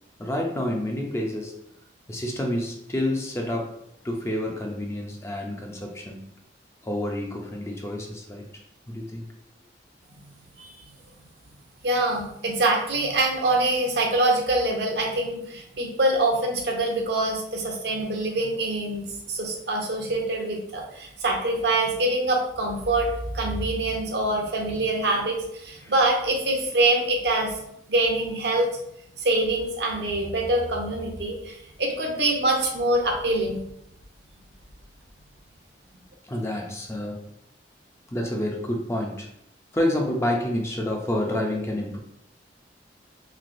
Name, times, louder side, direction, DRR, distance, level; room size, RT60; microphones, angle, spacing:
voice 1, 0.2-1.6 2.1-3.8 4.0-6.2 6.8-8.4 8.9-9.3 25.8-25.9 36.2-37.2 38.1-39.3 39.7-42.0, left 1 dB, 15° left, 0 dB, 0.4 m, -28 dB
voice 2, 11.8-23.1 23.3-27.5 27.9-28.7 29.2-33.6, right 2 dB, 65° right, 1 dB, 0.6 m, -24 dB
3.2 x 2.9 x 2.5 m, 0.75 s
head